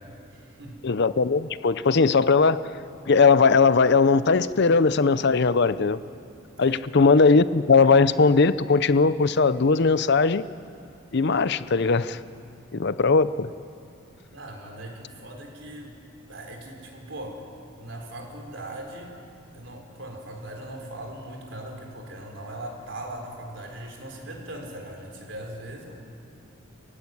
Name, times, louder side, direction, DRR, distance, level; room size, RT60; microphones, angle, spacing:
voice 1, 0.0-0.8 6.6-6.8 13.8-14.0 14.3-15.9 16.3-17.5 17.8-19.1 19.5-26.0, right 1 dB, 60° right, 2 dB, 4.3 m, -39 dB
voice 2, 0.8-2.7 3.1-6.0 6.6-10.4 11.1-12.2 12.7-13.5, left 4 dB, 55° left, 15 dB, 0.6 m, -19 dB
26.0 x 16.5 x 9.7 m, 2.5 s
head